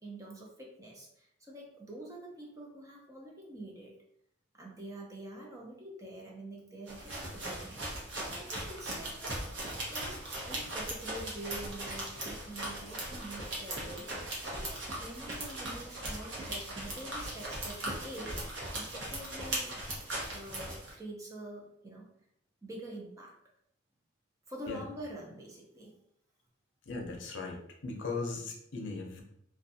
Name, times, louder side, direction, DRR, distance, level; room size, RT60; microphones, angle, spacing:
voice 1, 0.0-3.9 4.5-7.8 8.2-19.7 20.3-22.1 22.6-23.3 24.5-25.9, right 1 dB, 15° right, -2 dB, 0.5 m, -46 dB
sound 1, 6.9-20.9, right 1 dB, 80° right, 0.8 m, -39 dB
voice 2, 26.9-29.2, left 3 dB, 80° left, 1 dB, 0.6 m, -38 dB
2.5 x 2.2 x 2.6 m, 0.72 s
head